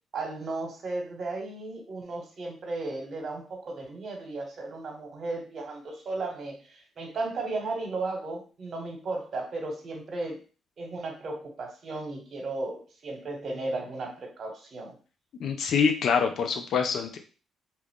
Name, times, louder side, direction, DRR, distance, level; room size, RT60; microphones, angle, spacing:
voice 1, 0.1-10.4 10.8-15.0, right 2 dB, 55° right, 2 dB, 1.1 m, -35 dB
voice 2, 15.4-17.2, left 6 dB, 65° left, 6 dB, 0.5 m, -25 dB
3.0 x 2.4 x 3.5 m, 0.36 s
cardioid pair, 90°, 0 cm